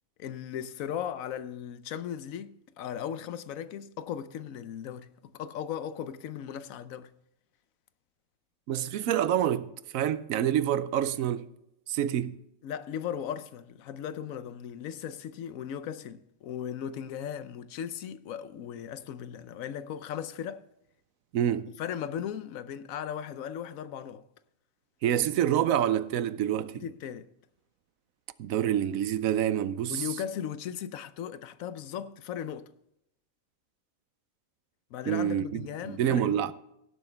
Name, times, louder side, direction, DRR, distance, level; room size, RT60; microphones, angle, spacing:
voice 1, 0.2-7.1 12.6-20.7 21.8-24.2 26.8-27.3 29.9-32.7 34.9-36.5, left 9 dB, 80° left, 1.1 m, -37 dB
voice 2, 8.7-11.5 11.9-12.4 21.3-21.7 25.0-26.8 28.4-30.0 35.1-36.5, right 10 dB, 80° right, 1.0 m, -27 dB
17.5 x 7.9 x 3.3 m
omnidirectional pair, 1.4 m